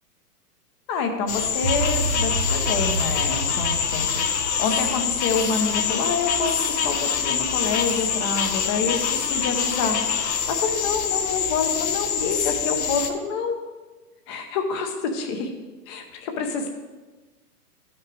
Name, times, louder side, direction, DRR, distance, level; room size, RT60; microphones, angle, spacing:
voice 1, 0.9-10.0 10.5-13.6 14.3-15.5 15.9-16.7, left 4 dB, 20° left, 4 dB, 0.6 m, -27 dB
sound 1, 1.3-13.1, left 7 dB, 45° left, 1.0 m, -25 dB
sound 2, 1.6-6.0, right 2 dB, 40° right, 0.8 m, -30 dB
11.0 x 5.9 x 4.7 m, 1.3 s
hypercardioid pair, 150°, 48 cm